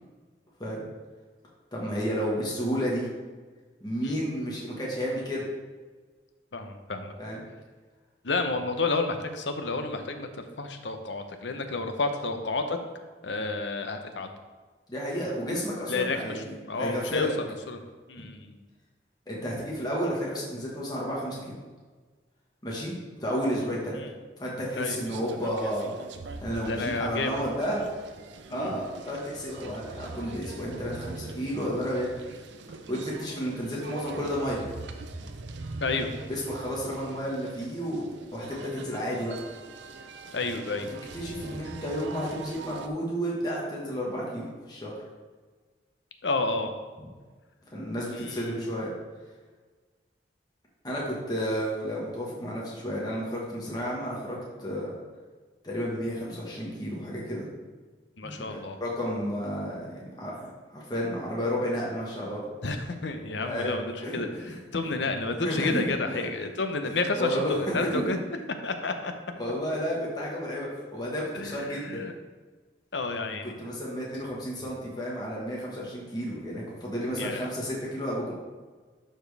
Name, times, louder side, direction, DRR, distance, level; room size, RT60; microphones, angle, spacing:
voice 1, 1.7-3.1 3.8-5.4 7.2-7.4 14.9-17.3 18.2-18.3 19.3-21.6 22.6-24.0 24.4-25.9 26.4-27.8 28.5-32.2 32.9-34.6 36.3-38.0 38.3-39.4 41.1-44.9 47.7-48.9 50.8-54.9 55.6-57.5 58.2-62.4 63.4-64.6 65.3-66.2 66.8-68.1 69.3-72.0 73.4-78.3, equal, 20° left, -5 dB, 1.4 m, -32 dB
voice 2, 6.5-7.1 8.2-12.8 13.2-14.4 15.9-17.8 18.1-18.6 24.0-24.1 24.8-25.0 26.7-27.4 28.5-28.7 35.8-36.1 40.3-40.9 46.2-46.7 48.1-48.6 58.2-58.8 62.6-68.2 68.5-69.1 71.3-72.1 72.9-73.5 77.1-77.5, left 3 dB, 90° left, 7 dB, 0.8 m, -31 dB
sound 1, 24.9-42.9, right 3 dB, 85° right, 0.6 m, -42 dB
11.5 x 4.4 x 3.4 m, 1.4 s
head